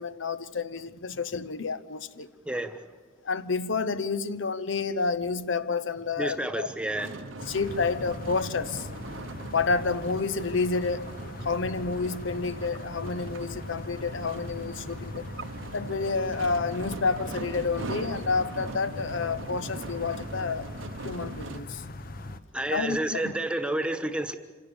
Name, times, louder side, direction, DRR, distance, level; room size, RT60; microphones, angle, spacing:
voice 1, 0.0-2.3 3.2-6.7 7.5-8.9 9.5-11.1 11.4-15.3 15.7-20.7 21.0-21.8 22.7-23.3, left 4 dB, 75° left, 0.8 m, -29 dB
voice 2, 2.4-2.8 6.2-7.2 22.5-24.4, right 1 dB, 5° right, 1.2 m, -30 dB
sound 1, 6.9-21.6, right 3 dB, 80° right, 0.9 m, -41 dB
sound 2, 7.4-22.4, left 2 dB, 45° left, 1.0 m, -41 dB
26.5 x 17.0 x 7.0 m
head